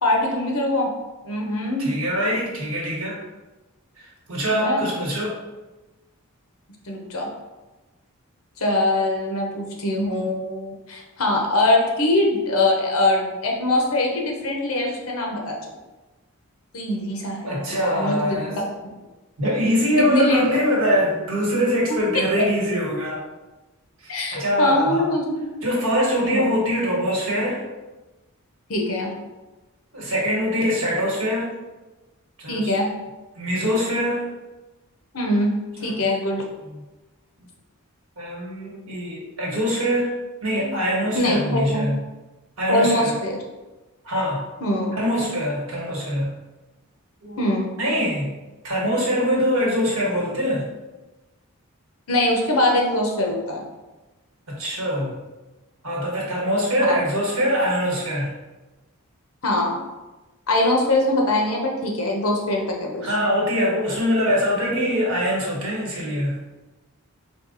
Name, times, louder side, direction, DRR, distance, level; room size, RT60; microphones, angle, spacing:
voice 1, 0.0-0.9 1.2-2.0 4.5-4.9 6.8-7.3 8.6-15.6 16.7-17.7 17.9-18.2 18.5-18.6 20.0-20.5 21.9-22.0 24.1-25.5 26.2-26.4 28.7-29.1 32.5-32.9 35.1-36.4 41.1-41.9 42.7-43.4 44.6-45.0 47.4-47.7 52.1-53.6 56.8-57.0 59.4-59.8 60.5-63.1, left 1 dB, 75° left, 0 dB, 0.8 m, -22 dB
voice 2, 1.8-3.2 4.3-5.4 17.4-18.6 19.4-23.2 24.0-25.1 25.6-27.6 29.9-31.5 32.4-32.7 33.4-34.3 35.8-35.9 38.2-40.1 40.4-42.0 42.6-43.1 44.0-44.5 44.9-46.3 47.2-47.4 47.8-48.3 48.6-50.7 54.5-55.1 55.8-58.3 63.0-66.4, equal, 70° right, -4 dB, 1.4 m, -23 dB
4.5 x 2.4 x 3.9 m, 1.1 s
head